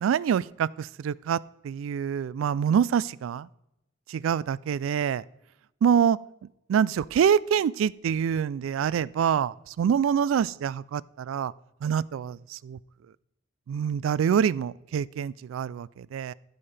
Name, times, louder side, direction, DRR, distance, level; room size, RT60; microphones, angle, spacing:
voice 1, 0.0-3.5 4.1-5.2 5.8-6.2 6.7-11.5 11.8-12.8 13.7-16.3, right 8 dB, 85° right, 21 dB, 0.3 m, -26 dB
14.0 x 5.5 x 3.3 m, 0.86 s
head